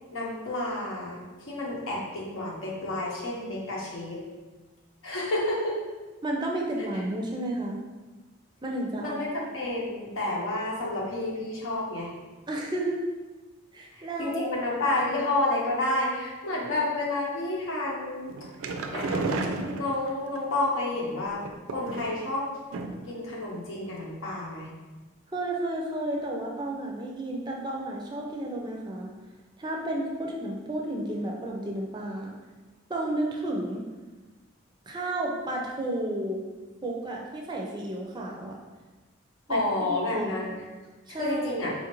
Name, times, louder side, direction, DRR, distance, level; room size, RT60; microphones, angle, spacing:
voice 1, 0.1-1.2 1.5-4.2 5.0-5.8 9.0-12.1 14.2-18.3 18.9-19.3 19.8-21.4 21.7-22.5 23.1-24.7 39.5-40.5 41.1-41.7, left 2 dB, 80° left, -4 dB, 0.9 m, -30 dB
voice 2, 6.2-7.8 8.6-9.2 12.5-13.0 13.7-14.5 25.3-29.1 29.6-32.3 32.9-33.9 34.9-36.4 36.8-38.6 39.5-40.3 41.1-41.7, right 1 dB, 20° right, -1 dB, 0.4 m, -32 dB
sound 1, 18.3-20.4 21.4-22.3 22.7-23.1 23.4-23.5 23.9-24.0, right 3 dB, 85° right, 0.4 m, -32 dB
4.2 x 2.4 x 2.9 m, 1.2 s
head